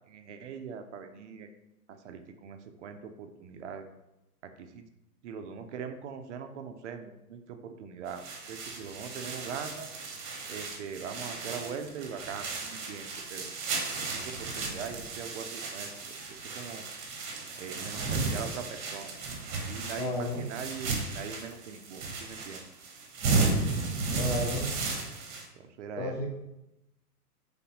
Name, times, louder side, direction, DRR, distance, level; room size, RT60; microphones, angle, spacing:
voice 1, 0.1-1.5 1.9-3.9 4.4-4.8 5.2-9.9 10.5-13.5 14.0-15.9 16.3-16.8 17.6-19.1 19.7-22.6 25.6-26.3, right 6 dB, 50° right, 6 dB, 0.5 m, -41 dB
sound 1, 8.1-25.4, right 3 dB, 30° right, 0.9 m, -34 dB
voice 2, 20.0-20.4 24.2-24.7 26.0-26.3, left 2 dB, 30° left, 1 dB, 0.4 m, -32 dB
3.9 x 3.3 x 2.8 m, 0.91 s
hypercardioid pair, 115°, 47 cm